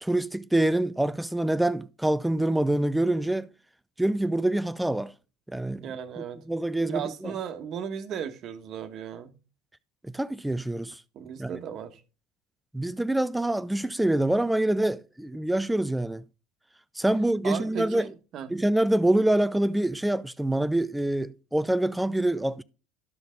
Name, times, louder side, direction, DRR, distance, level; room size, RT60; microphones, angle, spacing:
voice 1, 0.0-3.5 4.0-5.1 5.5-5.9 6.2-7.4 10.1-11.0 11.4-11.6 12.7-16.2 17.0-18.1 18.5-22.6, right 1 dB, 5° right, 0.5 m, -26 dB
voice 2, 5.8-6.4 6.8-9.3 11.1-12.0 17.4-18.5, right 8 dB, 50° right, 1.3 m, -35 dB
12.5 x 5.6 x 3.8 m
hypercardioid pair, 80°, 0 cm